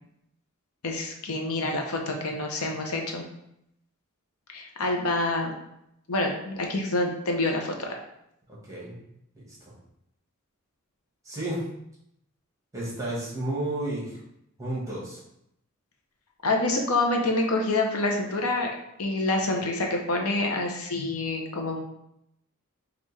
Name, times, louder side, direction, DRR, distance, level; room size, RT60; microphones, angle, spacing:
voice 1, 0.8-3.2 4.5-5.5 6.1-7.9 16.4-18.7 19.0-21.8, left 2 dB, 85° left, 2 dB, 0.7 m, -27 dB
voice 2, 8.5-9.0 9.7-9.8 11.2-11.6 12.7-14.2 14.6-15.2, right 1 dB, 15° right, -5 dB, 1.2 m, -32 dB
5.3 x 2.4 x 3.2 m, 0.79 s
head